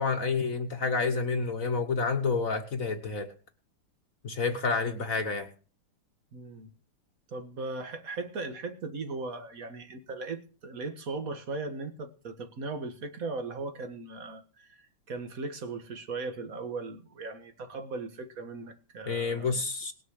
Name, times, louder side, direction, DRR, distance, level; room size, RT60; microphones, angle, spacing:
voice 1, 0.0-3.3 4.2-5.5 19.1-19.9, left 4 dB, 45° left, 6 dB, 1.2 m, -29 dB
voice 2, 6.3-6.7 7.3-14.8 15.1-19.6, right 3 dB, 45° right, 8 dB, 1.8 m, -38 dB
19.0 x 6.7 x 6.5 m, 0.39 s
omnidirectional pair, 2.4 m